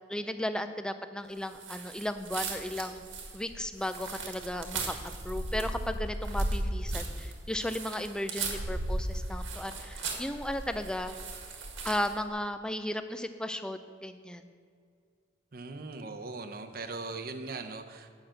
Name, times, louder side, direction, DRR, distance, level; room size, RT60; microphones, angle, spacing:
voice 1, 0.1-3.0 3.3-4.9 5.2-11.1 11.8-14.5, left 1 dB, 5° left, 9 dB, 0.4 m, -35 dB
sound 1, 1.6-12.2, right 2 dB, 80° right, 1.6 m, -36 dB
voice 2, 15.5-18.1, right 3 dB, 50° right, 7 dB, 0.7 m, -39 dB
8.9 x 5.8 x 7.6 m, 2.1 s
head